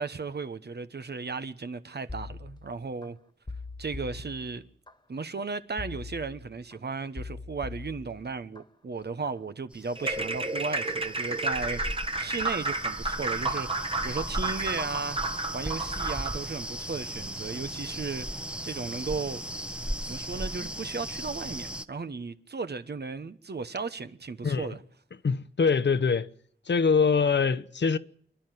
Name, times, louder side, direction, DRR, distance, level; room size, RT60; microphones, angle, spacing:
voice 1, 0.0-3.2 3.8-4.6 5.1-18.3 18.6-19.4 20.1-24.8, right 4 dB, 60° right, 1.1 m, -35 dB
sound 1, 2.1-3.1 3.5-4.9 5.8-6.8 7.2-8.6 9.0-9.4, left 3 dB, 25° left, 1.6 m, -42 dB
sound 2, 9.7-21.9, equal, 5° right, 1.0 m, -37 dB
sound 3, 10.0-16.4, right 2 dB, 30° right, 1.3 m, -31 dB
voice 2, 25.2-26.3 26.7-28.0, left 5 dB, 70° left, 1.0 m, -23 dB
28.0 x 11.5 x 9.3 m
wide cardioid pair, 80°, 19 cm